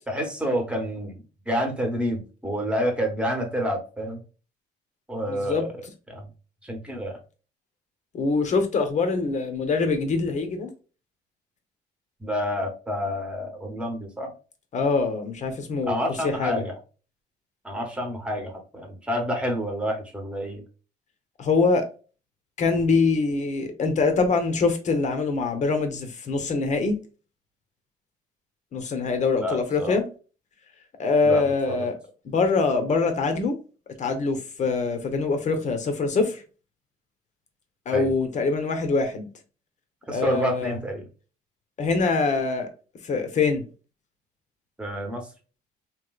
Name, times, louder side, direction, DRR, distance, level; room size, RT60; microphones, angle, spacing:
voice 1, 0.1-4.2 5.1-5.7 6.1-6.3 6.6-7.2 12.2-14.3 15.9-16.8 17.6-20.6 29.4-30.0 31.2-31.9 37.9-38.1 40.1-41.0 44.8-45.2, equal, 5° right, 1.2 m, -29 dB
voice 2, 5.3-5.6 8.1-10.7 14.7-16.0 16.2-16.6 21.4-21.9 22.6-27.0 28.7-30.0 31.0-31.9 32.2-33.6 34.0-36.4 37.9-39.3 40.1-40.8 41.8-42.7 43.0-43.7, left 4 dB, 45° left, 0.9 m, -24 dB
3.2 x 3.0 x 2.3 m
cardioid pair, 110°, 17 cm